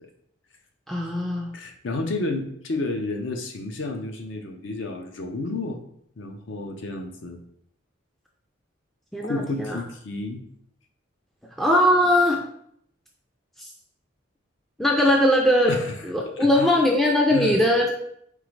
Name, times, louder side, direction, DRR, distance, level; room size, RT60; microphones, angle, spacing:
voice 1, 0.9-1.5 9.1-9.8 11.6-12.4 13.6-13.7 14.8-15.7 16.0-17.9, left 1 dB, ahead, -1 dB, 0.3 m, -20 dB
voice 2, 1.5-5.8 6.2-7.4 9.2-10.4 15.7-15.9 16.2-16.7 17.3-17.6, left 2 dB, 65° left, 4 dB, 0.6 m, -31 dB
4.1 x 3.7 x 3.1 m, 0.70 s
head